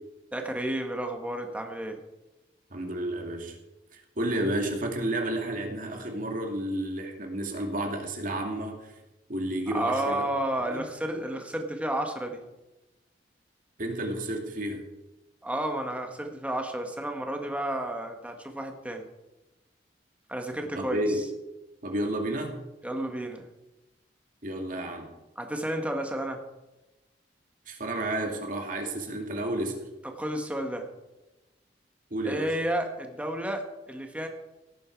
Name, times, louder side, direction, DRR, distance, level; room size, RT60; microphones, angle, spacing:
voice 1, 0.3-2.0 9.7-12.4 15.4-19.0 20.3-21.0 22.8-23.5 25.4-26.4 30.2-30.9 32.3-34.3, right 1 dB, 10° right, 3 dB, 1.7 m, -31 dB
voice 2, 2.7-3.6 3.9-8.9 9.3-10.2 10.7-10.8 13.8-14.8 20.7-21.2 21.8-22.6 24.4-25.1 27.7-29.8 32.1-32.5, right 1 dB, 50° right, 2 dB, 2.5 m, -31 dB
17.5 x 9.4 x 4.8 m, 1.0 s
head